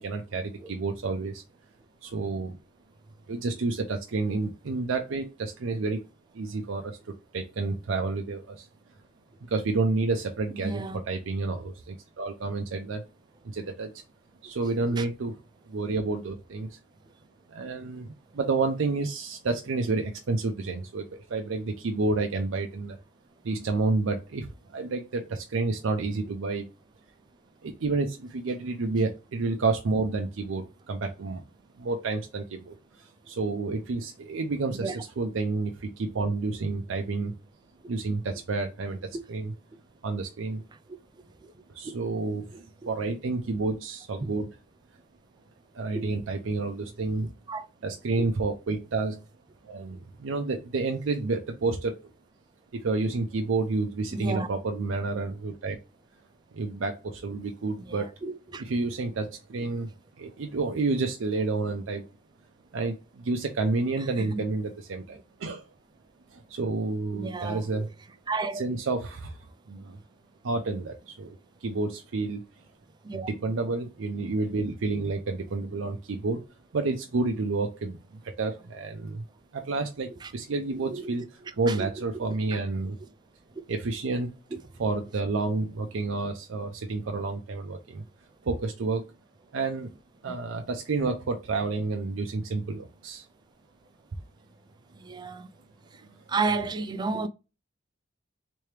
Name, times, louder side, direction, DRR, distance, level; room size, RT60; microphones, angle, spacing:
voice 1, 0.0-1.4 2.0-2.6 3.3-6.0 6.3-8.7 9.5-13.0 13.4-13.9 14.4-15.4 15.7-16.8 17.5-23.0 23.4-26.7 27.6-31.4 31.8-37.3 37.9-39.5 40.0-40.6 41.7-42.4 42.9-44.5 45.7-47.3 47.8-49.2 49.6-52.0 52.7-55.8 56.5-58.2 58.6-62.1 62.7-65.6 66.3-67.9 68.5-70.0 70.4-71.4 71.6-72.4 73.1-76.4 76.7-79.2 79.5-83.0 83.7-84.3 84.8-88.0 88.4-89.1 89.5-89.9 90.2-93.2, right 3 dB, 75° right, 0.5 m, -30 dB
voice 2, 10.6-11.0 14.9-15.1 34.7-35.0 41.4-41.5 41.8-41.9 42.5-42.6 44.2-44.4 45.9-46.1 47.5-47.7 48.2-48.3 54.1-54.5 57.9-58.0 58.2-58.6 64.3-64.4 67.1-67.8 68.3-68.6 73.0-73.3 80.2-80.3 80.9-81.2 81.7-81.9 82.5-82.6 90.3-90.4 95.0-95.5 96.3-97.3, right 4 dB, 20° right, 0.3 m, -32 dB
3.4 x 3.2 x 3.2 m
head